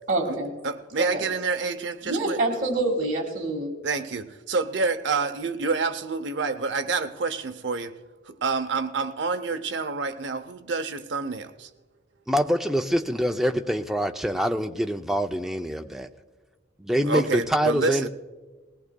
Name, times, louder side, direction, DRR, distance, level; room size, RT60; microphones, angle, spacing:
voice 1, 0.1-0.5 1.0-1.2 2.0-3.7, right 2 dB, 40° right, -2 dB, 1.8 m, -26 dB
voice 2, 0.6-2.4 3.8-8.0 8.3-11.7 17.1-18.1, right 4 dB, 60° right, 9 dB, 0.7 m, -28 dB
voice 3, 12.3-16.1 16.8-18.1, equal, ahead, 5 dB, 0.4 m, -25 dB
19.5 x 17.5 x 2.2 m, 1.3 s
head